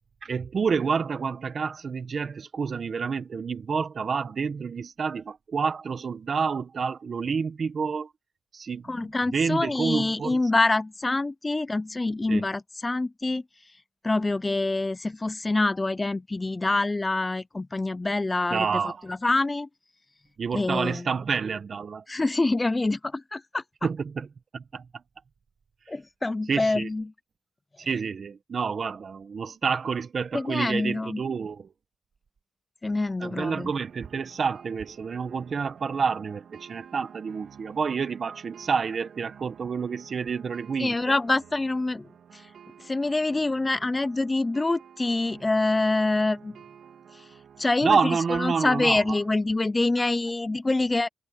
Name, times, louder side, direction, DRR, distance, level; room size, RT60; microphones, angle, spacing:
voice 1, 0.2-8.1 8.5-10.4 12.3-12.4 18.5-19.1 20.4-22.0 23.8-24.3 24.5-25.0 26.5-26.9 27.8-31.7 33.2-41.1 47.8-49.0, right 5 dB, 55° right, 1.6 m, -29 dB
voice 2, 8.9-13.4 14.0-19.7 20.5-21.1 22.1-23.6 25.9-27.1 30.3-31.2 32.8-33.7 40.8-42.5 42.8-46.6 47.1-47.2 47.6-51.1, left 2 dB, 20° left, 0.6 m, -26 dB
sound 1, 33.3-49.3, right 8 dB, 75° right, 3.2 m, -51 dB
cardioid pair, 85°, 0 cm